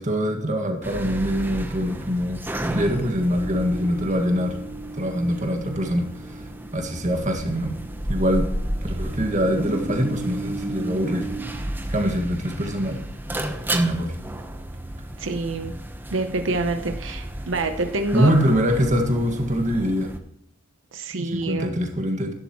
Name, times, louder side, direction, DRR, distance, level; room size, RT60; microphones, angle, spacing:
voice 1, 0.0-2.4 2.7-4.6 4.9-6.4 6.7-7.8 8.1-8.5 9.0-11.3 11.9-13.0 13.7-14.1 18.1-20.1 21.1-22.3, equal, 40° right, 4 dB, 1.9 m, -24 dB
sound 1, 0.8-20.2, right 1 dB, 10° right, 0.9 m, -32 dB
voice 2, 15.2-15.7 16.1-18.3 20.9-21.7, right 2 dB, 85° right, 7 dB, 0.9 m, -26 dB
12.0 x 11.5 x 3.1 m, 0.81 s
head